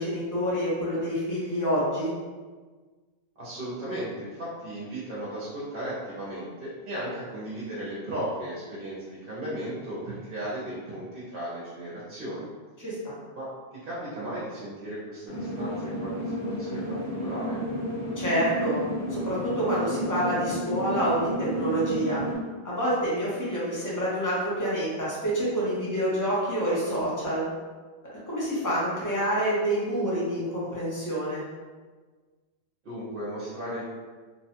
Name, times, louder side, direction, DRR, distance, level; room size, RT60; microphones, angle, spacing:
voice 1, 0.0-2.1 12.8-12.9 18.2-18.8 19.1-21.3 21.5-22.2 22.6-27.4 28.3-31.4, right 1 dB, 20° left, -8 dB, 0.8 m, -27 dB
voice 2, 3.4-12.5 13.3-13.5 13.8-16.3 16.6-17.6 32.8-33.9, right 1 dB, 60° right, -8 dB, 0.9 m, -35 dB
sound 1, 15.3-22.4, equal, 75° left, 1.0 m, -32 dB
2.8 x 2.2 x 2.8 m, 1.4 s
omnidirectional pair, 1.1 m